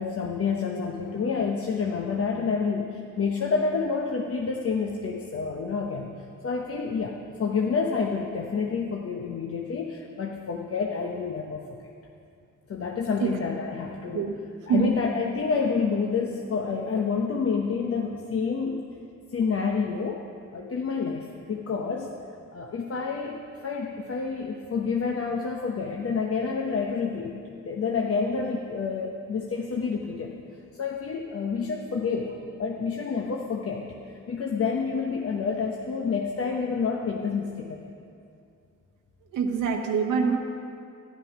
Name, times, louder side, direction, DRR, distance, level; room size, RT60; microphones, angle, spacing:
voice 1, 0.0-6.1 6.4-11.9 12.7-14.3 14.7-18.9 19.3-20.2 20.5-22.1 22.5-23.4 23.6-27.4 27.6-30.3 30.8-33.8 34.3-37.9, left 5 dB, 50° left, 0 dB, 1.0 m, -28 dB
voice 2, 39.3-40.4, right 6 dB, 90° right, 2 dB, 1.2 m, -24 dB
11.0 x 10.0 x 6.0 m, 2.4 s
cardioid pair, 85°, 30 cm